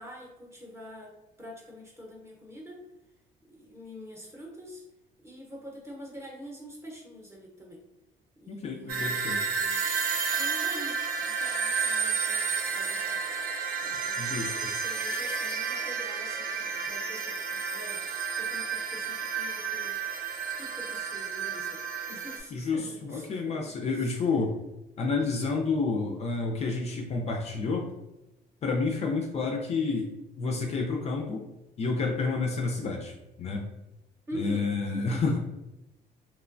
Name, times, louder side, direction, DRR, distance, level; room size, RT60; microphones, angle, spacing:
voice 1, 0.0-2.8 3.5-4.8 5.2-7.8 8.4-10.0 10.3-13.2 13.8-18.0 18.4-20.0 20.6-21.8 22.1-23.6 23.9-24.2 34.3-35.4, equal, 15° right, -2 dB, 0.7 m, -45 dB
voice 2, 8.5-9.4 14.2-14.5 22.5-24.6 25.0-27.9 28.6-30.1 30.4-31.5 31.8-33.1 33.4-33.7 34.3-35.4, left 4 dB, 40° left, 1 dB, 0.4 m, -29 dB
sound 1, 8.9-22.4, right 5 dB, 65° right, 0.4 m, -31 dB
2.9 x 2.1 x 2.5 m, 0.95 s
cardioid pair, 110°, 17 cm